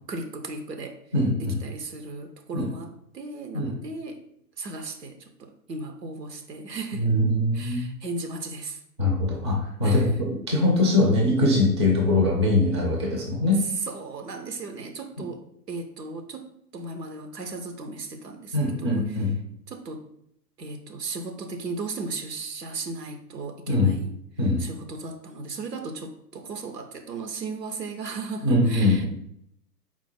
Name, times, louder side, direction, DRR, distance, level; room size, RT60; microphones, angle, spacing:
voice 1, 0.0-1.0 1.6-4.2 4.6-7.1 7.5-8.8 9.8-10.1 13.9-15.4 15.7-19.0 19.7-20.0 20.6-24.1 24.6-29.1, right 3 dB, 80° right, 5 dB, 0.7 m, -36 dB
voice 2, 1.1-1.5 2.5-2.7 3.5-3.7 7.0-7.9 9.0-13.6 18.5-19.3 23.7-24.0 24.4-24.6 28.4-29.1, left 2 dB, 20° right, -1 dB, 0.4 m, -22 dB
4.4 x 2.0 x 4.3 m, 0.73 s
figure-of-eight pair, 115°, 48 cm